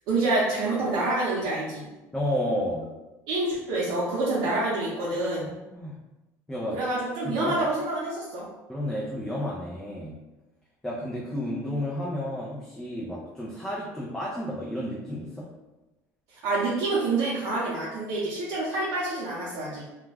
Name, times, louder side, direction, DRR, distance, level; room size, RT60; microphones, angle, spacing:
voice 1, 0.1-1.9 3.3-5.4 6.7-8.5 16.3-19.8, right 2 dB, 70° right, -8 dB, 0.7 m, -27 dB
voice 2, 2.1-2.9 5.5-6.0 6.5-6.8 7.2-7.6 8.7-10.1 10.8-15.5, left 1 dB, 5° left, -6 dB, 0.3 m, -31 dB
2.3 x 2.1 x 3.3 m, 1.0 s
cardioid pair, 155°, 7 cm